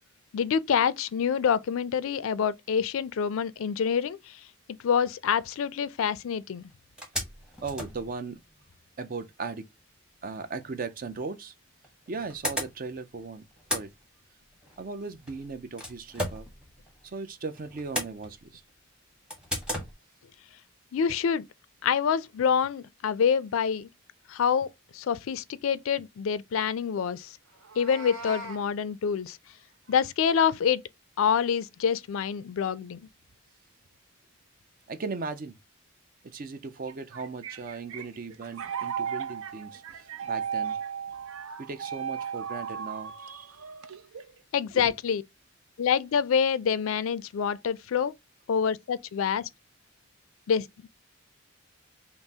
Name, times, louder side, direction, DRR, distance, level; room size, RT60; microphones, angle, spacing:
voice 1, 0.3-4.2 4.8-6.6 20.9-21.5 21.8-23.9 24.3-24.7 24.9-27.3 27.8-29.4 29.9-30.8 31.2-33.0 44.5-45.2 45.8-48.1 48.5-49.5 50.5-50.7, left 7 dB, 75° left, 0.4 m, -26 dB
sound 1, 6.6-6.7 7.0-8.8 10.8-10.9 11.8-13.2 13.4-17.2 17.5-18.7 19.3-19.9, equal, 5° right, 1.0 m, -36 dB
voice 2, 7.6-8.4 9.0-9.6 10.2-11.5 12.1-13.4 13.7-13.9 14.8-16.5 17.0-18.6 34.9-35.6 36.2-40.7 41.6-43.5 44.7-45.0, right 4 dB, 40° right, 0.4 m, -37 dB
Meow, 27.5-28.6, right 1 dB, 70° right, 1.4 m, -40 dB
sound 2, 36.9-44.4, right 7 dB, 90° right, 0.5 m, -36 dB
5.3 x 2.0 x 2.7 m
head